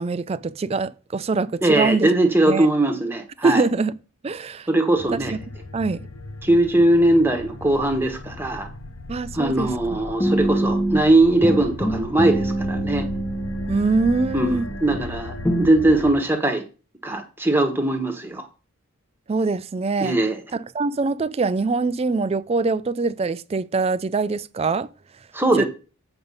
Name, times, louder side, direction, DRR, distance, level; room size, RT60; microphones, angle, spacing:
voice 1, 0.0-2.1 2.5-2.7 3.4-4.0 4.2-4.7 5.1-5.4 5.7-6.1 9.1-10.0 13.7-14.7 19.3-20.2 20.5-24.9 25.1-25.3 25.5-25.6, right 3 dB, 30° right, 0.3 m, -23 dB
voice 2, 1.6-3.6 4.7-5.3 6.4-8.7 9.3-13.1 14.3-16.6 17.0-18.5 20.0-20.4 25.3-25.6, right 1 dB, 10° right, 1.2 m, -20 dB
sound 1, 5.0-16.1, left 2 dB, 65° left, 0.8 m, -37 dB
sound 2, 10.2-11.1 11.4-15.0 15.4-15.7, right 1 dB, 15° left, 0.8 m, -25 dB
7.9 x 5.3 x 5.4 m
head